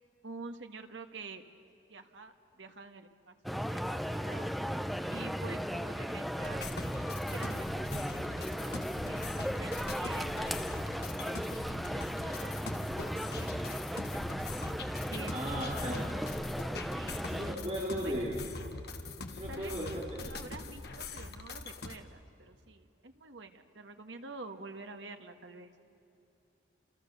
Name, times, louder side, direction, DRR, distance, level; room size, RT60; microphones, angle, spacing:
voice 1, 0.2-1.4 1.9-4.5 5.1-7.1 7.3-11.6 11.9-12.7 13.0-14.1 15.1-15.5 16.9-17.2 17.7-18.3 19.5-19.8 20.2-25.7, right 3 dB, 85° right, 6 dB, 1.7 m, -49 dB
sound 1, 3.4-17.5, equal, ahead, 0.7 m, -36 dB
sound 2, 6.4-22.0, left 3 dB, 60° left, 1.7 m, -43 dB
voice 2, 15.3-16.1 17.2-18.4 19.3-20.4, equal, 35° right, -5 dB, 3.6 m, -36 dB
30.0 x 28.0 x 6.9 m, 2.8 s
head